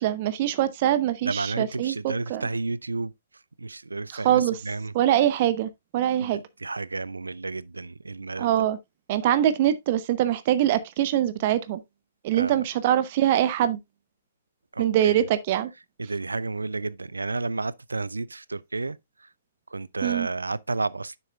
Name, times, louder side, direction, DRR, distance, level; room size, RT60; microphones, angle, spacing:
voice 1, 0.0-2.5 4.1-4.6 4.9-6.4 8.4-8.8 9.1-11.8 12.2-13.8 14.8-15.7 20.0-20.3, right 11 dB, 40° right, 0.8 m, -23 dB
voice 2, 1.3-3.1 3.6-4.9 6.6-8.5 12.3-12.6 14.7-15.2 16.0-19.0 19.7-21.2, right 3 dB, 80° right, 0.4 m, -31 dB
9.9 x 7.0 x 2.4 m
figure-of-eight pair, 120°, 0 cm